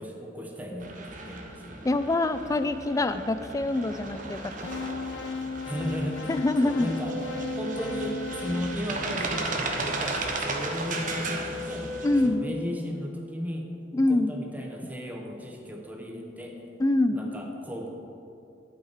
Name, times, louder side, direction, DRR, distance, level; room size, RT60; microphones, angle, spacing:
voice 1, 0.0-1.9 5.6-6.4 6.6-12.0 12.2-16.6 17.1-17.9, equal, 10° right, 1 dB, 0.9 m, -35 dB
sound 1, 0.8-12.3, right 3 dB, 45° right, 0.9 m, -35 dB
voice 2, 1.8-4.7 6.3-6.9 12.0-12.5 13.9-14.3 16.8-17.3, left 2 dB, 20° left, 11 dB, 0.3 m, -25 dB
sound 2, 4.7-9.8, left 5 dB, 90° left, 0.4 m, -36 dB
Wind instrument woodwind instrument, 7.0-12.5, left 1 dB, 80° right, 0.6 m, -40 dB
11.5 x 5.5 x 5.0 m, 2.6 s
head